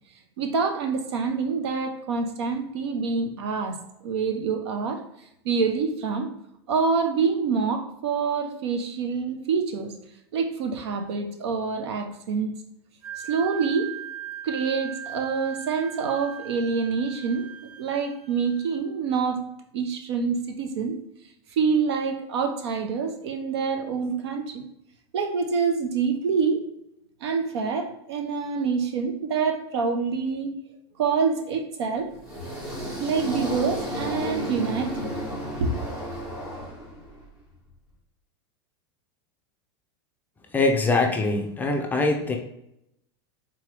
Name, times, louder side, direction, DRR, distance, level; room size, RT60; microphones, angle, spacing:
voice 1, 0.4-5.0 5.4-6.3 6.7-9.9 10.3-12.5 13.2-13.9 14.4-17.5 17.8-19.5 19.7-21.0 21.6-24.6 25.1-26.7 27.2-30.6 31.0-32.1 32.9-35.1 35.6-35.8, right 5 dB, 80° right, 6 dB, 0.8 m, -26 dB
Wind instrument woodwind instrument, 13.0-18.8, right 9 dB, 55° right, 1.4 m, -39 dB
sound 1, 32.1-37.3, equal, 20° right, 1.5 m, -33 dB
voice 2, 40.5-42.4, left 3 dB, 15° left, 2 dB, 0.5 m, -23 dB
3.7 x 3.0 x 3.3 m, 0.80 s
supercardioid pair, 135°, 14 cm